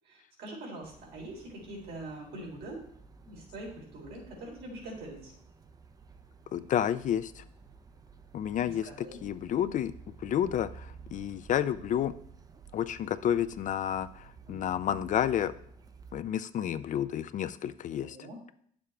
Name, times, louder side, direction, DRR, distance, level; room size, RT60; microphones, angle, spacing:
voice 1, 0.1-2.8 3.2-5.3 8.6-9.2 14.5-15.0 17.9-18.4, right 1 dB, 75° right, -2 dB, 3.7 m, -44 dB
sound 1, 0.8-16.2, right 5 dB, 20° right, 0.6 m, -53 dB
voice 2, 6.5-7.4 8.3-9.9 10.2-12.1 12.7-15.5 16.1-18.2, left 10 dB, 50° left, 13 dB, 0.4 m, -30 dB
9.9 x 7.0 x 3.3 m, 0.64 s
cardioid pair, 110°, 17 cm